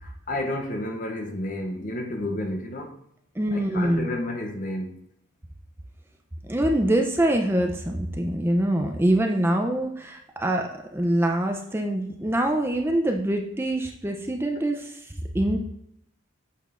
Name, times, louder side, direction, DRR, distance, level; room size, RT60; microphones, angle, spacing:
voice 1, 0.0-3.0 3.5-5.0, left 1 dB, 40° left, 0.7 m, -31 dB
voice 2, 3.4-4.1 6.5-15.6, right 1 dB, 10° right, 0.5 m, -24 dB
8.3 x 6.6 x 2.5 m
head